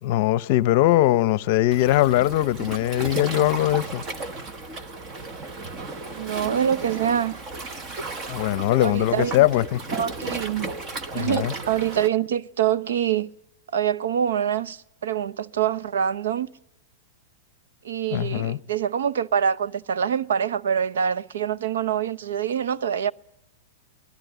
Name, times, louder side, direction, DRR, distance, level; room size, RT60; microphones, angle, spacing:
voice 1, 0.0-4.0 8.3-9.8 11.1-11.5 18.1-18.6, left 15 dB, 45° left, 0.8 m, -21 dB
Waves surf, 1.7-12.1, right 3 dB, 20° right, 1.1 m, -34 dB
voice 2, 6.1-7.4 8.8-9.5 9.9-10.7 11.1-13.3 13.7-16.5 17.8-23.1, right 8 dB, 85° right, 0.8 m, -25 dB
24.0 x 18.0 x 8.1 m
supercardioid pair, 160°, 0 cm